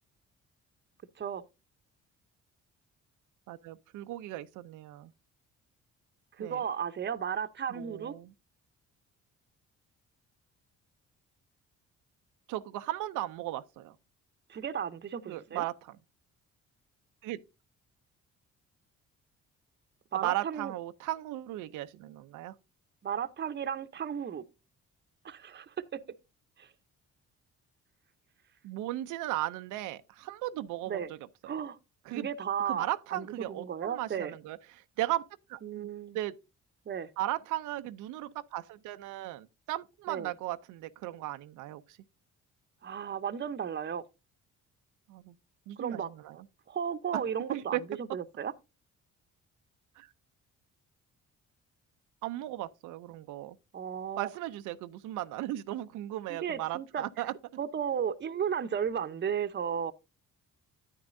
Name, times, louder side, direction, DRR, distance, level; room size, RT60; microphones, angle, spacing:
voice 1, 3.5-5.1 6.4-6.6 7.7-8.3 12.5-13.9 15.3-16.0 17.2-17.4 20.2-22.5 28.6-31.1 32.1-32.3 32.7-35.2 35.5-35.9 36.1-36.3 37.2-42.0 45.1-45.3 45.7-46.4 47.1-47.2 47.5-47.8 50.0-50.1 52.2-53.6 54.2-57.3, right 15 dB, 90° right, 0.5 m, -36 dB
voice 2, 6.4-8.1 14.5-15.6 20.1-20.7 23.0-24.4 25.2-25.7 26.6-26.7 30.9-31.1 31.5-31.8 32.1-32.9 33.1-34.4 35.6-36.2 36.9-37.1 40.1-40.3 42.8-44.0 45.8-46.4 46.7-48.5 53.7-54.3 56.3-57.0 57.6-59.9, right 8 dB, 35° right, 0.7 m, -34 dB
9.6 x 9.1 x 2.5 m
cardioid pair, 90°, 30 cm